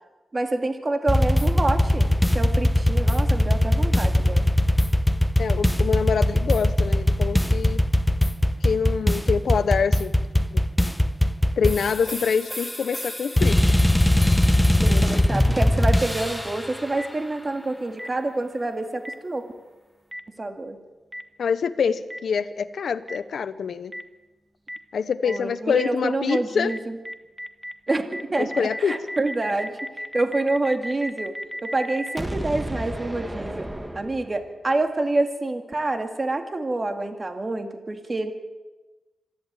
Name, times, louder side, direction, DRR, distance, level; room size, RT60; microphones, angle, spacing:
voice 1, 0.3-2.1 2.3-4.5 14.8-19.5 20.4-20.8 25.2-27.0 27.9-31.4 31.6-33.7 33.9-38.3, right 2 dB, 35° right, 6 dB, 2.3 m, -27 dB
sound 1, 1.1-16.7, left 1 dB, 5° left, 1.0 m, -21 dB
voice 2, 5.4-7.8 8.6-10.1 10.5-10.6 11.6-13.6 14.8-15.0 21.4-23.9 24.9-26.7 28.4-29.0, left 6 dB, 80° left, 11 dB, 0.8 m, -25 dB
Boom, 17.0-17.1 18.0-18.1 19.0-19.1 20.1-20.2 21.1-21.2 22.1-22.2 23.1-23.2 23.9-24.0 24.7-24.8 25.3-25.4 25.8-25.9 26.3-26.4 26.7-26.8 27.0-34.6, equal, 10° right, 1.5 m, -33 dB
26.5 x 11.5 x 9.1 m, 1.2 s
cardioid pair, 80°, 0 cm